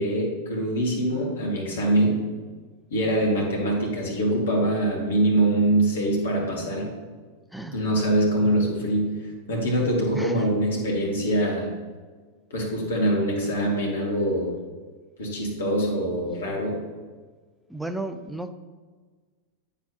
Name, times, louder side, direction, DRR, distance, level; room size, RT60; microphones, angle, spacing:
voice 1, 0.0-2.2 2.9-6.9 7.7-9.1 9.5-11.7 12.5-14.5 15.2-16.8, right 1 dB, 65° left, -1 dB, 2.1 m, -24 dB
voice 2, 10.1-10.5 17.7-18.5, right 1 dB, ahead, 8 dB, 0.5 m, -34 dB
8.9 x 7.2 x 2.9 m, 1.4 s
figure-of-eight pair, 90°, 0 cm